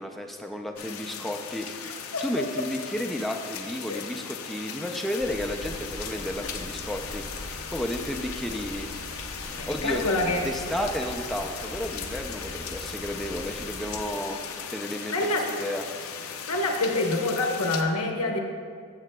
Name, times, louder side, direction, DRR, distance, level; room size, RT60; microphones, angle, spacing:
voice 1, 0.0-7.2 7.7-8.9 9.5-14.4 14.7-15.8, equal, ahead, 2 dB, 0.4 m, -32 dB
sound 1, 0.8-17.8, left 7 dB, 70° left, 0.6 m, -38 dB
voice 2, 1.8-2.2 3.9-4.0 9.6-10.4 15.1-15.5 16.5-18.4, left 2 dB, 85° left, 2 dB, 1.0 m, -26 dB
sound 2, 5.2-14.0, equal, 65° right, 2.2 m, -41 dB
14.5 x 6.9 x 2.2 m, 2.1 s
head